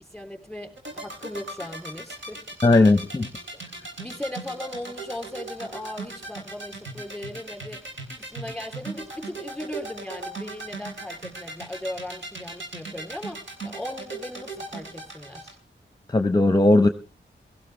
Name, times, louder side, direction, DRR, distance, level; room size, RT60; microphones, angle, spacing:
voice 1, 0.0-2.5 4.0-7.8 8.2-15.6, left 1 dB, ahead, 3.5 m, -38 dB
sound 1, 0.8-15.5, right 3 dB, 70° right, 3.8 m, -37 dB
voice 2, 2.6-3.3 16.1-16.9, left 2 dB, 20° left, 0.9 m, -17 dB
17.0 x 14.5 x 3.4 m
cardioid pair, 50°, 20 cm